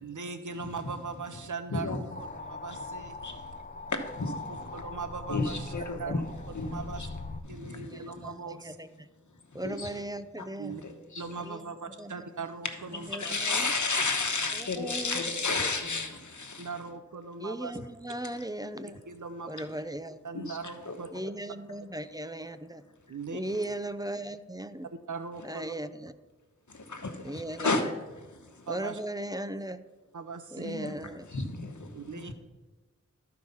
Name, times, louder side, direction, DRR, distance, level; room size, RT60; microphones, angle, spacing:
voice 1, 0.0-2.1 2.5-3.1 4.5-5.6 5.9-6.2 6.7-7.0 7.5-8.8 10.6-10.8 11.2-13.1 16.6-17.8 19.1-19.5 20.2-21.1 23.1-23.4 25.1-25.7 28.7-29.0 30.1-30.8 31.9-32.3, right 4 dB, 90° right, 0.6 m, -39 dB
voice 2, 0.5-0.9 1.7-2.2 2.7-2.9 3.2-3.5 3.9-4.8 5.3-6.2 6.5-7.1 7.4-8.3 9.5-9.9 10.4-11.3 12.6-16.7 17.8-17.9 18.2-18.4 20.3-20.9 26.7-27.9 28.2-28.7 30.6-32.3, left 3 dB, 75° left, 1.1 m, -33 dB
sound 1, 2.1-7.4, left 3 dB, 30° left, 0.7 m, -41 dB
voice 3, 7.9-9.1 9.5-10.8 11.4-12.3 13.1-13.7 14.5-15.2 15.6-15.7 17.4-19.0 19.5-20.2 21.1-22.8 23.3-24.9 25.4-26.1 27.2-27.7 28.7-29.8 30.5-31.3, right 1 dB, 15° right, 0.5 m, -37 dB
13.0 x 4.7 x 5.4 m
wide cardioid pair, 50°, 30 cm